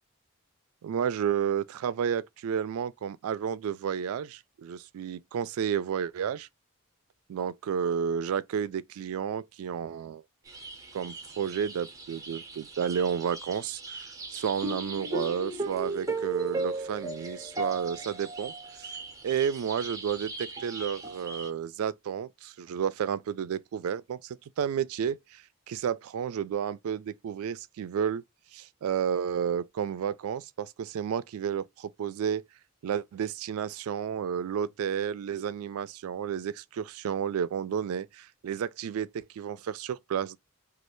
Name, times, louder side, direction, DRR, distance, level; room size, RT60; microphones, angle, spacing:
voice 1, 0.8-6.5 7.3-10.2 10.9-19.0 19.2-28.2 28.5-32.4 32.8-40.4, right 8 dB, 75° right, 0.3 m, -31 dB
sound 1, 10.5-21.5, right 3 dB, 15° right, 0.6 m, -37 dB
3.1 x 2.4 x 3.0 m
head